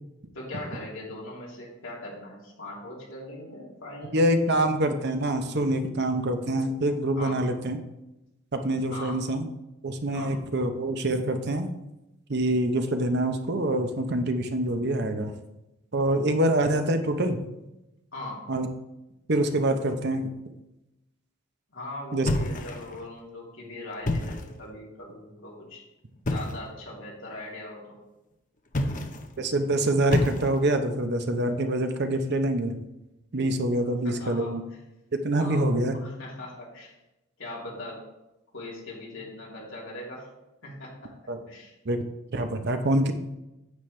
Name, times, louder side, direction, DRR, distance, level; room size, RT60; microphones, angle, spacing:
voice 1, 0.3-4.6 7.1-7.4 8.9-9.2 10.1-10.3 18.1-18.4 21.7-25.8 26.3-28.0 34.0-34.6 35.4-36.9 37.4-38.0 38.5-40.3 40.6-41.1 41.5-41.7, left 1 dB, 65° left, -4 dB, 3.1 m, -40 dB
voice 2, 4.1-7.8 8.5-9.5 9.8-11.7 12.3-15.3 15.9-17.4 18.5-18.7 19.3-20.3 22.1-22.3 29.4-32.7 33.3-34.6 35.1-36.0 41.3-41.4 41.8-42.0 42.3-43.1, right 1 dB, 50° right, 7 dB, 0.7 m, -25 dB
sound 1, 22.3-23.1 23.9-24.6 26.2-26.7 28.7-29.3 30.1-30.8, left 1 dB, 35° left, 0.8 m, -29 dB
9.5 x 8.2 x 3.2 m, 0.94 s
head